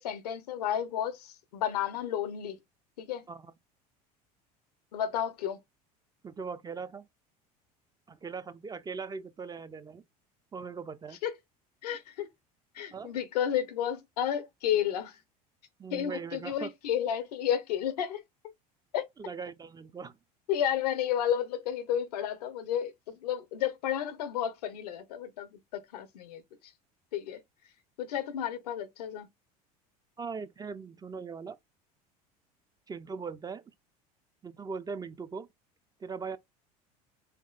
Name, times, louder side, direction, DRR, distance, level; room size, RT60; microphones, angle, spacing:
voice 1, 0.0-2.6 3.0-3.2 4.9-5.6 11.2-11.3 11.8-12.3 12.8-15.2 15.9-18.2 18.9-19.0 20.5-26.4 27.1-27.4 28.0-29.3, left 10 dB, 85° left, 0.7 m, -32 dB
voice 2, 6.2-7.1 8.1-10.0 10.5-11.2 12.9-13.1 15.8-16.7 19.2-20.1 30.2-31.6 32.9-33.6 34.4-35.5 36.0-36.4, right 5 dB, 20° right, 0.4 m, -40 dB
3.7 x 3.5 x 2.3 m
hypercardioid pair, 80°, 20 cm